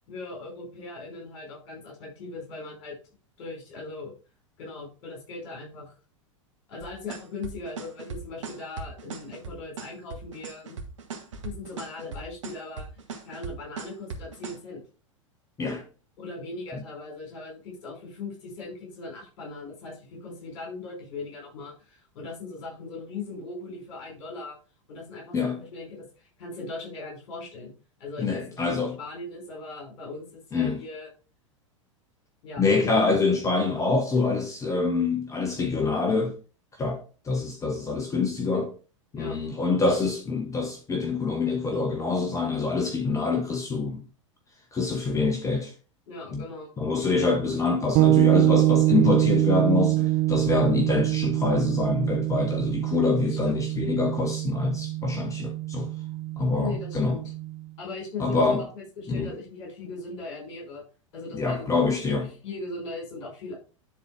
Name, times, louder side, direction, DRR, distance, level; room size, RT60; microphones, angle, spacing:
voice 1, 0.1-3.0 3.4-4.1 4.6-5.9 6.7-10.8 11.4-14.8 16.2-24.6 24.9-27.7 28.0-31.1 32.4-32.6 33.2-33.4 39.1-39.4 46.1-46.7 53.3-53.6 56.6-57.3 57.8-60.8 61.1-62.2 62.4-63.5, left 3 dB, 55° left, 4.6 m, -39 dB
sound 1, 6.8-14.6, right 5 dB, 65° right, 1.9 m, -38 dB
voice 2, 28.2-28.9 30.5-30.8 32.6-36.3 36.8-37.0 37.2-38.7 39.1-44.0 44.7-45.7 46.3-46.4 46.8-55.9 56.4-57.2 58.2-58.6 59.1-59.3 61.3-62.3, left 4 dB, 20° left, 1.1 m, -25 dB
sound 2, 47.9-57.6, right 16 dB, 40° right, 0.4 m, -24 dB
10.5 x 4.1 x 4.6 m
figure-of-eight pair, 90°, 17 cm